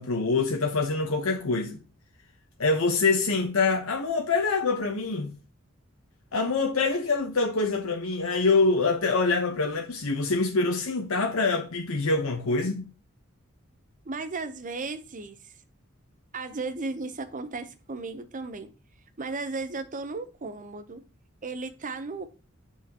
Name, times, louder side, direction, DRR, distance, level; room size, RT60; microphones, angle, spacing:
voice 1, 0.0-1.8 2.6-5.3 6.3-12.9, left 3 dB, 90° left, 0.9 m, -25 dB
voice 2, 14.0-15.6 16.3-18.7 19.2-21.0 21.4-22.3, right 3 dB, 40° right, 0.7 m, -35 dB
7.4 x 5.7 x 2.9 m
head